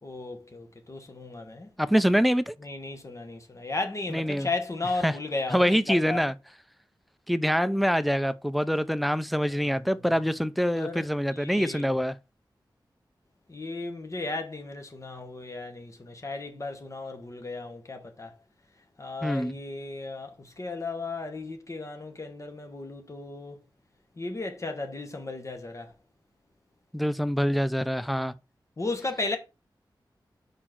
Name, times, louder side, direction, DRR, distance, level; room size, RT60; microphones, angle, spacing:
voice 1, 0.0-1.7 2.6-6.2 9.5-10.0 10.7-11.1 11.3-11.9 13.5-18.3 19.0-23.6 24.2-25.9 28.8-29.4, left 3 dB, 40° left, 1.1 m, -35 dB
voice 2, 1.8-2.5 4.1-4.5 5.0-5.1 5.5-6.3 7.3-12.1 19.2-19.6 26.9-28.3, equal, ahead, 0.5 m, -25 dB
5.0 x 4.4 x 5.9 m
wide cardioid pair, 110°, 8 cm